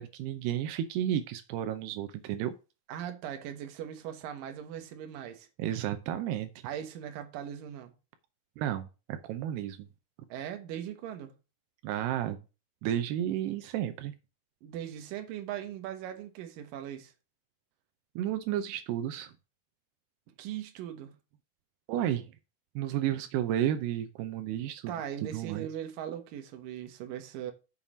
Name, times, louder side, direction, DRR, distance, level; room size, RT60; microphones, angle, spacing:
voice 1, 0.0-2.5 5.6-6.5 8.6-9.9 11.8-12.4 12.8-14.1 18.2-19.3 21.9-22.3 22.8-24.9 25.2-25.7, right 11 dB, 85° right, 2.7 m, -32 dB
voice 2, 2.9-5.5 6.6-7.9 10.3-11.3 14.6-17.1 20.4-21.1 24.9-27.5, right 10 dB, 65° right, 2.6 m, -39 dB
7.2 x 5.7 x 6.1 m
omnidirectional pair, 4.7 m